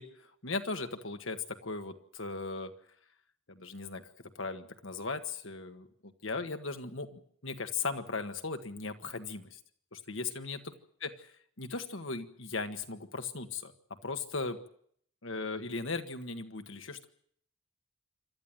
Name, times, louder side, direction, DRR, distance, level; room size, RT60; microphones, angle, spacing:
voice 1, 0.0-2.7 3.5-4.1 4.4-9.6 9.9-10.7 11.0-11.3 11.6-13.7 14.0-14.6 15.2-17.1, left 4 dB, 80° left, 7 dB, 1.7 m, -38 dB
27.5 x 12.5 x 9.1 m, 0.64 s
head